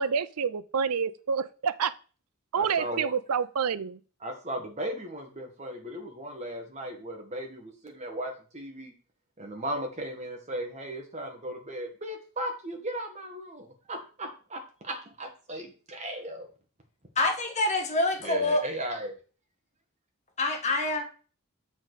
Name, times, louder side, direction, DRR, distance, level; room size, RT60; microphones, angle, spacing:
voice 1, 0.0-1.9 2.5-4.0, right 6 dB, 90° right, 14 dB, 0.5 m, -28 dB
voice 2, 2.5-3.1 4.2-8.9 9.4-16.5 18.2-19.1, right 1 dB, 30° right, 2 dB, 1.7 m, -36 dB
voice 3, 17.1-18.6 20.4-21.0, left 2 dB, 30° left, 3 dB, 1.4 m, -26 dB
7.3 x 5.0 x 4.1 m, 0.37 s
head